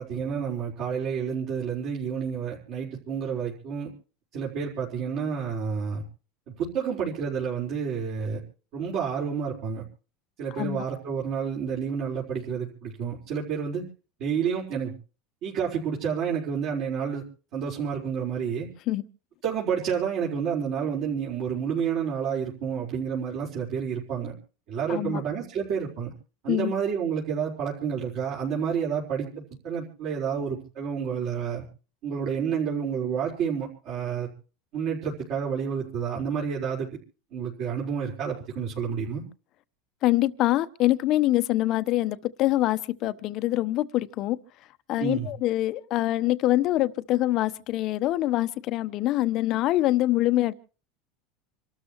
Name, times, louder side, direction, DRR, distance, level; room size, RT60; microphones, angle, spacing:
voice 1, 0.0-3.9 4.3-6.0 6.5-8.4 8.7-9.8 10.4-13.8 14.2-14.9 15.4-17.2 17.5-18.7 19.4-24.3 24.7-26.1 26.4-31.6 32.0-34.3 34.7-36.9 37.3-39.2 45.0-45.3, right 7 dB, 45° right, 4.6 m, -29 dB
voice 2, 24.9-25.2 26.5-26.7 40.0-44.4 44.9-50.5, left 15 dB, 40° left, 0.9 m, -24 dB
28.0 x 13.0 x 3.1 m
supercardioid pair, 165°, 0 cm